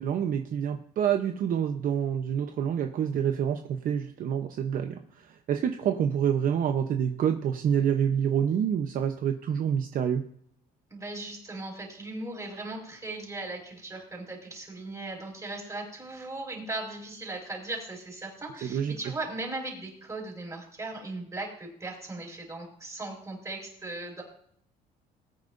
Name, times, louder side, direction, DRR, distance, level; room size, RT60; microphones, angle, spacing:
voice 1, 0.0-10.2 18.6-19.1, right 8 dB, 55° right, 6 dB, 0.8 m, -27 dB
voice 2, 10.9-24.2, right 2 dB, 20° right, 0 dB, 5.2 m, -38 dB
20.0 x 9.5 x 2.6 m, 0.65 s
cardioid pair, 110°, 17 cm